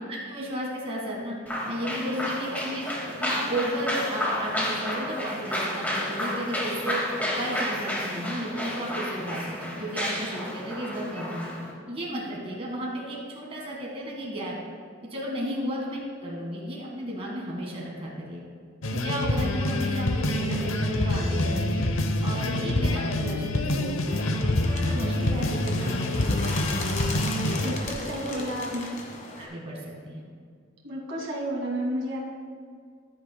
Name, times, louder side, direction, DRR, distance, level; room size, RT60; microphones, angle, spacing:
voice 1, 0.1-1.4 1.6-7.0 7.3-11.5 11.9-14.6 15.0-18.4 18.9-21.8 22.2-27.0 27.4-27.7 28.0-28.6 29.4-30.2, equal, 30° right, -3 dB, 1.7 m, -34 dB
sound 1, 1.5-11.7, equal, 10° left, 2.0 m, -31 dB
sound 2, 18.8-27.7, left 1 dB, 85° left, 0.8 m, -26 dB
Bird, 24.1-29.4, left 2 dB, 40° left, 1.4 m, -37 dB
voice 2, 27.6-28.8 30.8-32.2, equal, 65° right, -2 dB, 2.1 m, -31 dB
15.0 x 11.0 x 2.2 m, 2.1 s
head